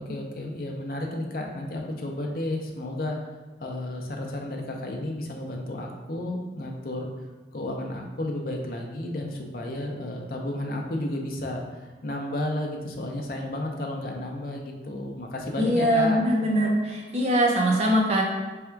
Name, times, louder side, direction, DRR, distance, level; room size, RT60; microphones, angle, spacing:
voice 1, 0.0-3.2 3.6-7.1 7.5-16.2, left 1 dB, 55° left, 1 dB, 0.5 m, -32 dB
voice 2, 15.6-18.2, equal, 35° right, -2 dB, 0.7 m, -22 dB
3.4 x 2.3 x 4.4 m, 1.3 s
head